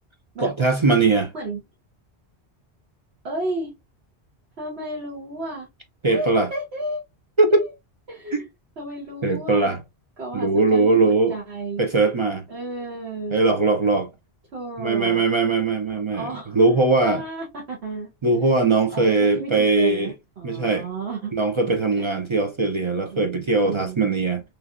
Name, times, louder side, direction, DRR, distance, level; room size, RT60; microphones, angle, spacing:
voice 1, 0.4-1.3 6.0-6.5 7.4-7.6 8.3-8.4 9.2-9.8 10.3-11.3 11.8-12.4 13.3-14.1 14.8-17.2 18.2-20.1 20.4-20.8 21.3-24.4, right 3 dB, 45° right, 0.4 m, -20 dB
voice 2, 3.2-3.7 4.6-5.7 6.1-7.0 7.5-7.7 8.1-8.5 8.8-9.8 10.2-11.9 12.5-13.4 14.5-15.3 15.9-16.6 17.0-18.1 18.9-21.3 22.0-22.1 23.1-24.0, right 2 dB, 70° right, 1.4 m, -32 dB
3.1 x 2.7 x 2.4 m
omnidirectional pair, 1.1 m